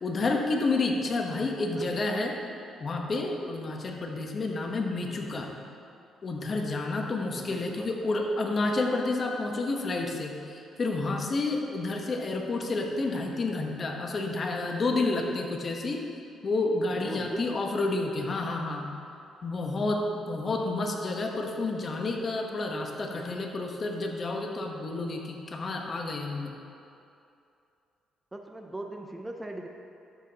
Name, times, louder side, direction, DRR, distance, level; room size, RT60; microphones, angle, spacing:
voice 1, 0.0-2.4 2.8-5.5 6.2-16.0 16.4-18.9 19.4-26.5, left 2 dB, 40° left, 2 dB, 1.0 m, -30 dB
voice 2, 1.3-2.0 7.3-7.9 17.0-17.6 28.3-29.7, right 1 dB, 15° right, 4 dB, 0.5 m, -39 dB
12.0 x 7.3 x 2.9 m, 2.6 s
cardioid pair, 90°, 0 cm